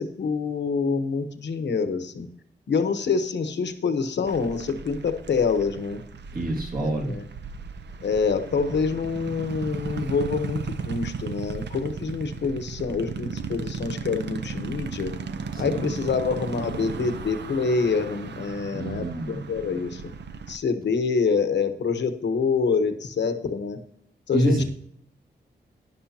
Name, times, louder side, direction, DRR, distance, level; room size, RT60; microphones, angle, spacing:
voice 1, 0.0-2.3 2.7-6.0 6.8-7.2 8.0-10.6 10.9-15.1 15.6-20.0 20.5-23.8 24.3-24.6, left 5 dB, 75° left, 9 dB, 1.1 m, -26 dB
sound 1, 4.3-20.6, right 5 dB, 70° right, 0.7 m, -36 dB
voice 2, 6.3-7.2 15.5-15.9 18.7-19.5 24.3-24.6, right 1 dB, 50° right, -1 dB, 2.1 m, -26 dB
12.0 x 10.5 x 2.8 m, 0.68 s
wide cardioid pair, 175°, 18 cm